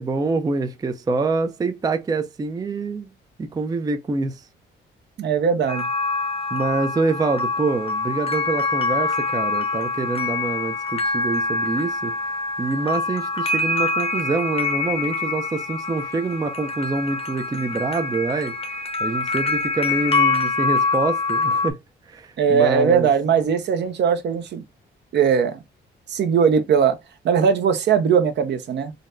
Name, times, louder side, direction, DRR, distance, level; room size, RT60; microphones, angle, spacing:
voice 1, 0.0-3.1 3.4-4.5 6.5-12.1 12.6-21.8 22.1-23.1, right 3 dB, 20° right, 0.4 m, -26 dB
voice 2, 5.2-5.9 22.4-24.6 25.1-25.6 26.1-27.0 27.2-28.9, right 7 dB, 60° right, 0.7 m, -19 dB
sound 1, 5.7-21.7, left 3 dB, 30° left, 0.7 m, -25 dB
3.9 x 2.1 x 2.4 m
cardioid pair, 90°, 20 cm